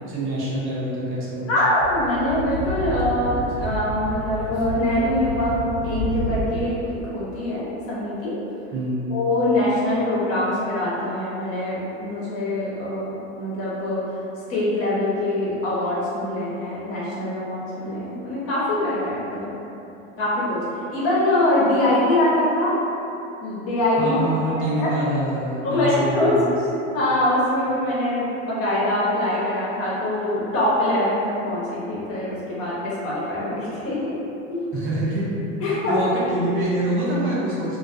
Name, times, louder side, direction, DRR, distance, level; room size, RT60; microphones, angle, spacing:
voice 1, 0.0-1.5 8.7-9.1 24.0-26.5 34.7-35.3 35.6-37.8, right 1 dB, 40° right, -7 dB, 0.7 m, -25 dB
voice 2, 1.5-8.3 9.1-14.2 14.5-19.5 20.2-20.6 20.9-22.7 23.4-24.2 24.5-24.9 25.6-26.5 26.9-34.2 34.5-34.6 35.6-36.0, left 1 dB, 45° left, -8 dB, 0.9 m, -23 dB
Speech / Wind, 1.8-6.7, equal, 80° right, 0.7 m, -30 dB
2.3 x 2.2 x 2.5 m, 2.8 s
supercardioid pair, 105°, 32 cm